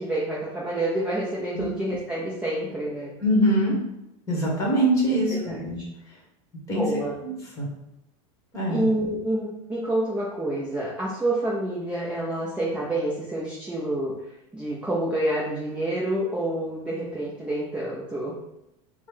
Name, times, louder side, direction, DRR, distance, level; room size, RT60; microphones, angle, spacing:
voice 1, 0.0-3.1 5.1-5.7 6.7-7.1 8.7-14.1 14.5-18.4, right 1 dB, 5° right, -6 dB, 0.5 m, -28 dB
voice 2, 3.2-3.8 4.3-5.8 6.7-6.8 7.2-7.7 8.5-8.8, equal, 20° left, -4 dB, 1.3 m, -23 dB
5.2 x 2.1 x 3.2 m, 0.87 s
supercardioid pair, 155°, 16 cm